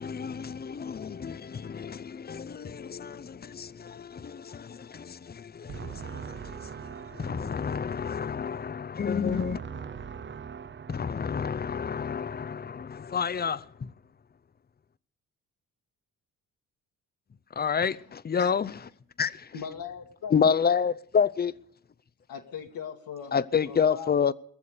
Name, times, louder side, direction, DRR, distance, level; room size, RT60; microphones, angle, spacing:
voice 1, 0.0-9.8 10.9-13.9 17.6-18.8 19.2-19.5 20.3-21.5 23.3-24.3, left 6 dB, 25° left, 0.6 m, -29 dB
voice 2, 5.7-7.8 9.4-11.3, right 7 dB, 30° right, 0.7 m, -41 dB
voice 3, 19.5-20.6 22.3-23.4 23.7-24.3, left 7 dB, 65° left, 1.6 m, -39 dB
21.5 x 7.2 x 6.7 m
supercardioid pair, 65°, 37 cm